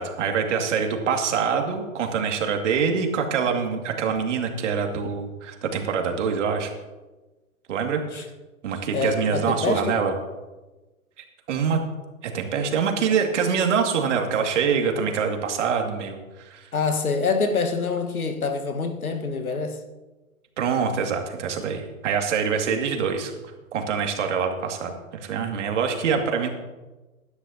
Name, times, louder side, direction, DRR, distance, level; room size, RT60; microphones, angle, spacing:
voice 1, 0.0-6.7 7.7-8.2 8.6-10.1 11.5-11.8 12.2-16.7 20.6-23.3 23.7-26.5, right 6 dB, 55° right, 2.4 m, -25 dB
voice 2, 8.9-10.0 16.7-19.8, left 4 dB, 90° left, 1.6 m, -26 dB
17.0 x 11.5 x 2.8 m
hypercardioid pair, 130°, 42 cm